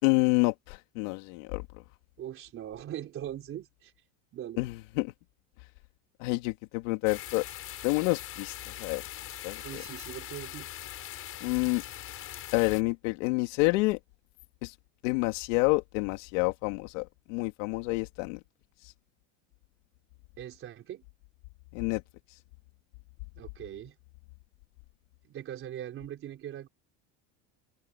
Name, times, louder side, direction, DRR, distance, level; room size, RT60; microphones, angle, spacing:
voice 1, 0.0-1.6 4.6-5.1 6.2-7.5 7.8-9.0 9.4-9.8 11.4-11.8 12.5-14.0 14.6-14.7 15.0-18.4 21.7-22.0, left 25 dB, 85° left, 3.5 m, -28 dB
voice 2, 2.2-3.9 4.3-4.6 9.6-10.7 20.4-21.0 23.3-24.0 25.2-26.7, right 11 dB, 35° right, 4.2 m, -41 dB
sound 1, 7.1-12.8, left 12 dB, 35° left, 7.3 m, -42 dB
cardioid pair, 170°, 37 cm